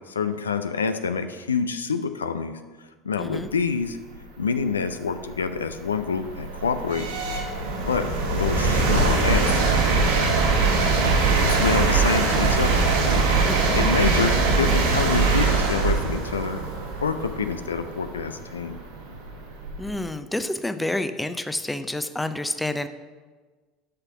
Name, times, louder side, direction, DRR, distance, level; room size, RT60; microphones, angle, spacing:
voice 1, 0.1-2.6 3.0-4.0 4.4-7.1 7.8-9.6 11.5-12.8 13.3-13.4 13.8-16.6 17.0-18.8, left 5 dB, 80° left, 9 dB, 0.4 m, -27 dB
voice 2, 3.2-3.5 13.4-13.7 19.8-22.9, left 1 dB, 10° left, 10 dB, 0.5 m, -29 dB
sound 1, 4.5-4.6 5.2-20.0, right 3 dB, 75° right, 1.8 m, -22 dB
6.6 x 5.8 x 5.9 m, 1.4 s
figure-of-eight pair, 70°, 0 cm